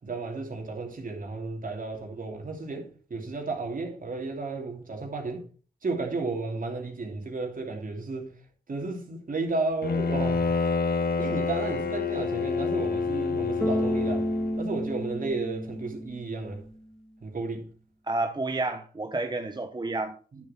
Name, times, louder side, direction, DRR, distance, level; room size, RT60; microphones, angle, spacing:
voice 1, 0.0-5.4 5.8-8.3 8.7-10.5 11.2-14.3 14.6-16.6 17.2-17.7 20.3-20.5, right 3 dB, 55° right, 3.1 m, -33 dB
Bowed string instrument, 9.8-14.7, left 4 dB, 65° left, 1.1 m, -28 dB
Bass guitar, 13.6-16.7, equal, 5° left, 1.0 m, -31 dB
voice 2, 18.1-20.2, right 2 dB, 25° right, 1.0 m, -30 dB
9.7 x 7.2 x 4.3 m
cardioid pair, 55°, 17 cm